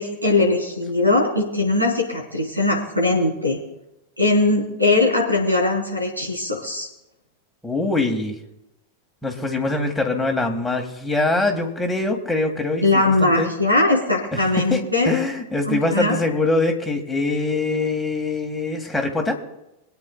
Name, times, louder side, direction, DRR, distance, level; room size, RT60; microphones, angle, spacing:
voice 1, 0.0-3.6 4.2-6.9 12.8-15.2 15.7-16.1, left 2 dB, 85° right, -1 dB, 4.3 m, -20 dB
voice 2, 7.6-8.4 9.2-13.5 14.3-19.4, left 2 dB, 5° left, 1 dB, 2.0 m, -23 dB
26.5 x 9.2 x 2.4 m, 0.91 s
figure-of-eight pair, 90°, 0 cm